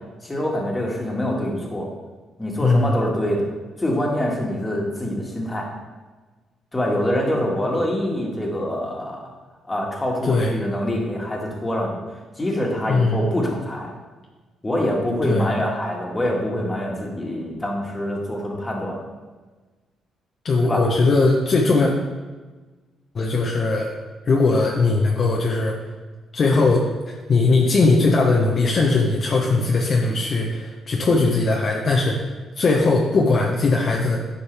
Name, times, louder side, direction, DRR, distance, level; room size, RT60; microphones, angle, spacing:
voice 1, 0.2-1.9 2.4-3.5 3.8-5.7 6.7-9.3 9.7-12.0 12.4-13.9 14.6-19.0 20.6-20.8, left 1 dB, 15° left, -1 dB, 1.9 m, -25 dB
voice 2, 2.6-3.0 10.2-10.5 12.9-13.2 15.3-15.5 20.4-21.9 23.1-23.9 24.3-25.8 26.3-32.3 32.6-34.2, left 3 dB, 45° left, -1 dB, 1.0 m, -19 dB
10.0 x 5.4 x 3.5 m, 1.3 s
cardioid pair, 90°, 0 cm